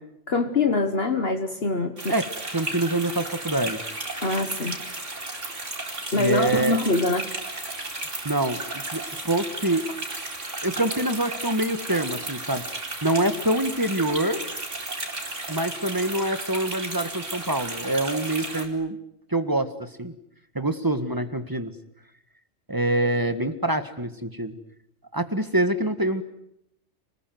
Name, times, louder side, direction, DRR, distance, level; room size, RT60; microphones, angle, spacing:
voice 1, 0.3-2.1 4.2-4.8 6.1-7.3, left 3 dB, 55° left, 6 dB, 1.8 m, -24 dB
sound 1, 2.0-18.7, right 2 dB, 80° right, 4.5 m, -34 dB
voice 2, 2.5-3.9 6.1-6.8 8.2-8.6 8.9-9.8 10.6-12.6 13.0-14.4 15.5-19.0 19.3-20.1 20.6-21.7 22.7-24.5 25.1-26.2, right 1 dB, 15° right, 9 dB, 1.7 m, -25 dB
29.5 x 20.5 x 9.4 m, 0.81 s
omnidirectional pair, 1.3 m